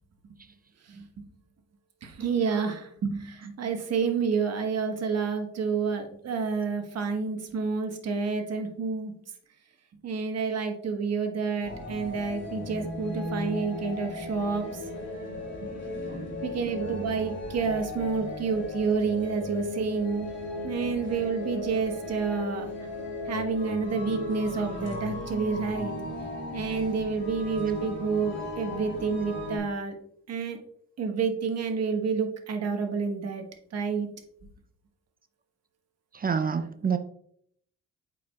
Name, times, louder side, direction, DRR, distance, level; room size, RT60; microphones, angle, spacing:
voice 1, 2.0-9.1 10.0-14.9 16.4-20.3 20.6-22.7 23.3-25.9 26.5-29.9 30.3-30.6 31.0-33.4 33.7-34.1, right 5 dB, 55° right, 5 dB, 1.2 m, -29 dB
sound 1, 11.6-29.6, left 2 dB, 40° left, 2.5 m, -36 dB
voice 2, 15.6-16.3 36.1-37.0, right 6 dB, 30° right, 9 dB, 0.4 m, -29 dB
8.3 x 4.9 x 2.3 m, 0.68 s
cardioid pair, 90°, 30 cm